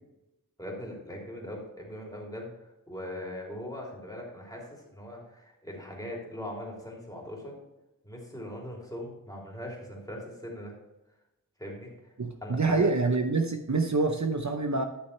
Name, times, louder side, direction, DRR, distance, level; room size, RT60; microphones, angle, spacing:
voice 1, 0.6-7.5 8.0-10.7 11.6-12.1 12.4-12.9, left 1 dB, 10° left, -3 dB, 3.1 m, -40 dB
voice 2, 12.2-14.8, right 3 dB, 55° right, 4 dB, 0.8 m, -26 dB
11.5 x 6.4 x 3.3 m, 0.96 s
wide cardioid pair, 45°, 34 cm